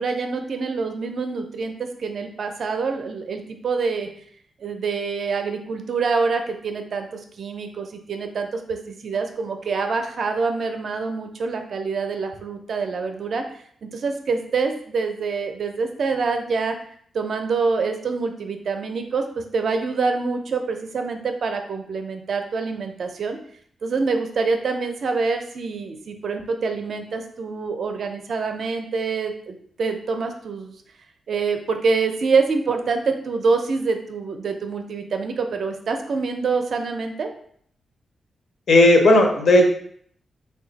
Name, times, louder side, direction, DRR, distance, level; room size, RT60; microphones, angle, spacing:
voice 1, 0.0-4.1 4.6-7.1 7.4-13.4 13.8-16.7 17.1-23.4 23.8-30.7 31.3-37.3, right 4 dB, 55° right, 5 dB, 0.4 m, -26 dB
voice 2, 38.7-39.7, left 1 dB, 60° left, 2 dB, 0.6 m, -14 dB
3.3 x 2.2 x 3.9 m, 0.62 s
wide cardioid pair, 155°, 0 cm